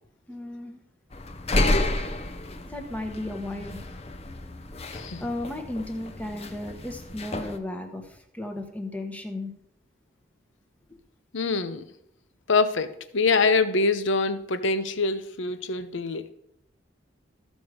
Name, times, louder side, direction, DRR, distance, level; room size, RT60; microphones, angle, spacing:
voice 1, 0.3-0.8 2.7-3.8 5.2-9.5, left 1 dB, 5° left, 4 dB, 1.1 m, -35 dB
sound 1, 1.1-7.6, left 1 dB, 30° left, 0.8 m, -30 dB
voice 2, 11.3-11.8 12.5-16.3, left 4 dB, 70° left, 11 dB, 0.8 m, -24 dB
14.0 x 6.2 x 5.0 m, 0.75 s
head